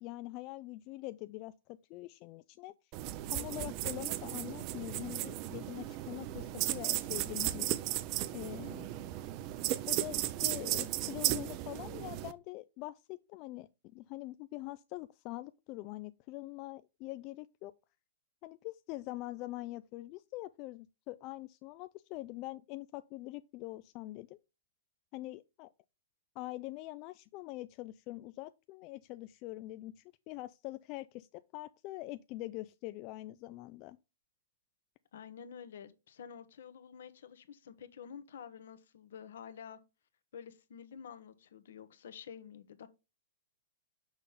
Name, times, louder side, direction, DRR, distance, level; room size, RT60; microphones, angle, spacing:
voice 1, 0.0-2.7 3.3-7.8 8.3-8.9 9.9-17.7 18.4-24.4 25.1-25.7 26.4-34.0, left 18 dB, 40° left, 0.3 m, -44 dB
sound 1, 2.9-12.3, right 15 dB, 40° right, 0.6 m, -35 dB
voice 2, 35.1-39.8 40.3-42.9, left 7 dB, 70° left, 1.0 m, -49 dB
6.1 x 5.4 x 3.6 m
hypercardioid pair, 120°, 0 cm